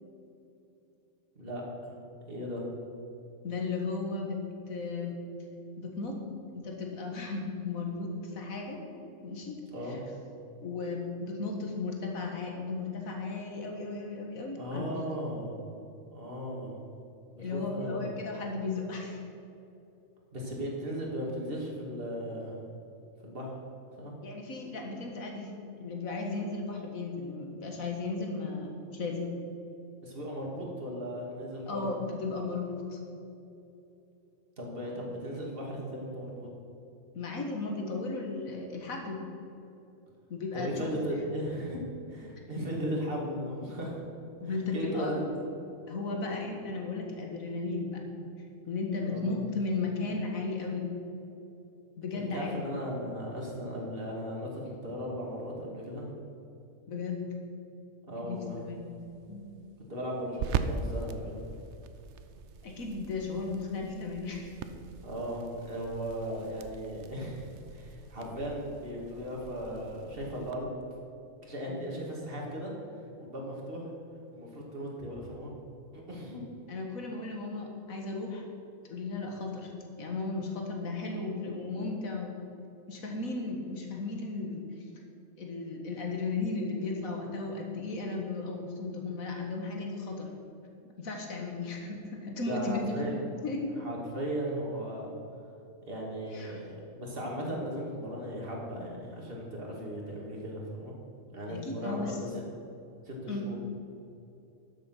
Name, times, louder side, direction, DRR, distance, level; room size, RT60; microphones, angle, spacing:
voice 1, 2.3-2.6 9.7-10.0 14.6-15.6 16.1-16.8 17.3-18.0 20.3-22.6 23.2-23.5 24.0-24.1 30.0-31.9 34.6-36.5 40.5-41.8 42.1-44.0 44.7-45.3 49.1-49.4 52.1-56.1 58.1-58.7 59.9-61.4 65.0-70.7 71.4-72.7 73.2-73.9 74.3-75.5 75.9-76.4 92.5-93.1 93.8-95.1 95.8-101.0 101.3-102.2 103.1-103.6, equal, 45° right, -2 dB, 2.6 m, -37 dB
voice 2, 3.4-4.4 4.7-5.2 5.8-6.2 6.5-8.8 9.2-9.6 9.9-10.0 10.6-15.0 17.4-19.2 24.2-25.5 25.8-29.3 31.7-33.0 37.2-39.2 40.3-40.9 44.4-45.2 45.9-48.2 48.7-50.9 52.0-52.6 56.9-57.2 58.2-58.9 59.3-59.4 62.6-64.6 71.7-71.8 76.7-78.4 78.8-79.7 80.0-82.4 82.9-84.7 85.4-90.3 91.0-93.7 96.3-96.6 101.5-102.2 103.3-103.5, left 3 dB, 85° left, 1 dB, 2.0 m, -35 dB
sound 1, 58.3-70.5, right 5 dB, 65° right, 0.9 m, -41 dB
12.5 x 7.7 x 5.9 m, 2.8 s
omnidirectional pair, 1.4 m